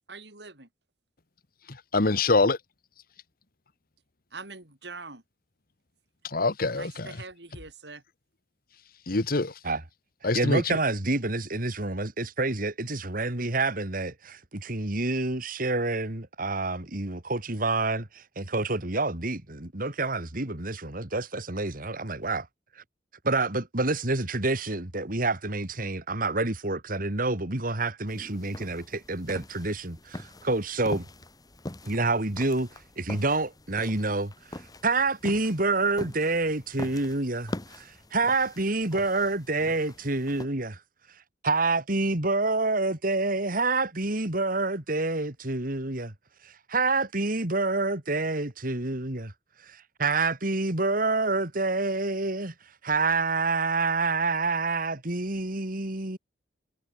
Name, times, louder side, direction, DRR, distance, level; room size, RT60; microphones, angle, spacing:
voice 1, 0.1-0.7 4.3-5.2 6.7-8.0, right 3 dB, 75° right, 5.2 m, -43 dB
voice 2, 1.7-2.6 6.2-7.2 9.1-9.6 10.2-10.8, left 3 dB, 55° left, 1.4 m, -25 dB
voice 3, 10.3-22.5 22.7-22.8 23.2-31.1 31.8-40.8 41.1-46.1 46.4-49.3 49.6-56.2, right 3 dB, 55° right, 3.0 m, -28 dB
sound 1, 28.1-40.5, left 1 dB, 20° left, 2.0 m, -43 dB
head